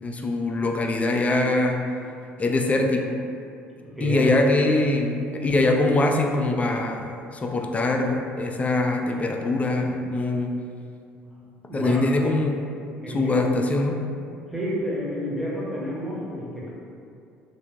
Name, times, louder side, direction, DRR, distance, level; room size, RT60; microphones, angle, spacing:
voice 1, 0.0-1.8 2.4-3.2 4.0-10.5 11.7-12.7 13.1-14.0, left 2 dB, 20° left, 2 dB, 0.3 m, -23 dB
voice 2, 3.8-4.3 11.1-11.4 11.7-12.0 13.0-13.4 14.5-16.7, equal, ahead, -6 dB, 0.8 m, -30 dB
3.4 x 2.2 x 2.8 m, 2.5 s
figure-of-eight pair, 55°, 6 cm